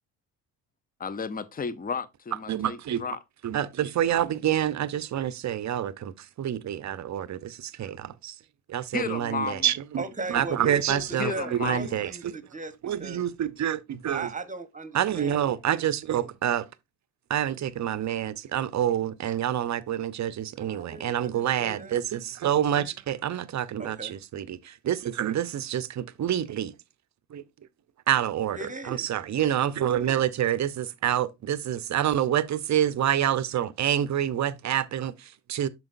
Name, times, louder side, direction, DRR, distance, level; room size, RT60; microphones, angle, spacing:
voice 1, 1.0-3.2 8.9-9.7 11.2-12.0, left 5 dB, 20° left, 0.7 m, -33 dB
voice 2, 2.5-3.0 3.4-8.4 8.7-12.3 12.8-14.3 14.9-16.7 17.3-26.7 27.3-27.4 28.1-35.7, right 10 dB, 35° right, 0.8 m, -27 dB
voice 3, 10.0-12.7 13.0-13.3 14.1-15.5 20.6-22.0 23.8-24.2 28.5-29.1, right 2 dB, 15° right, 1.1 m, -38 dB
8.7 x 6.4 x 2.5 m
hypercardioid pair, 55°, 49 cm